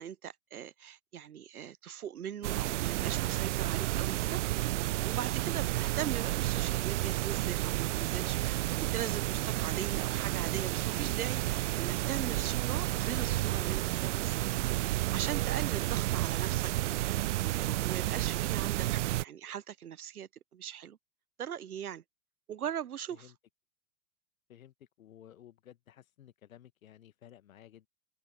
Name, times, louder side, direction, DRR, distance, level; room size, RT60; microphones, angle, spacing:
voice 1, 0.0-4.4 5.0-14.4 15.1-21.0 21.4-22.0 22.5-23.3, right 9 dB, 80° right, 0.8 m, -40 dB
sound 1, 2.4-19.2, right 16 dB, 55° right, 0.5 m, -31 dB
sound 2, 9.3-18.7, right 18 dB, 35° right, 5.0 m, -59 dB
voice 2, 24.5-27.9, left 11 dB, 65° left, 1.7 m, -55 dB
figure-of-eight pair, 95°, 43 cm